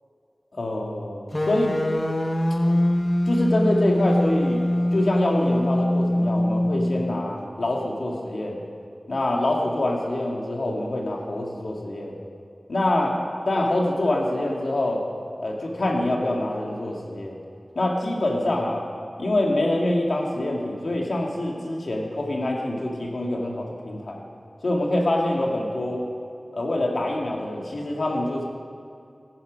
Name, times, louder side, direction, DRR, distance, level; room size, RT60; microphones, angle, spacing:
voice 1, 0.5-1.7 3.3-4.7 4.9-8.6 9.1-12.2 12.7-13.2 13.5-15.0 15.4-17.4 17.8-18.8 19.2-24.2 24.6-26.0 26.5-28.4, left 1 dB, 75° left, -1 dB, 2.0 m, -25 dB
sound 1, 1.3-7.4, left 1 dB, 30° left, 1.0 m, -23 dB
15.5 x 9.9 x 5.2 m, 2.5 s
wide cardioid pair, 45°, 0 cm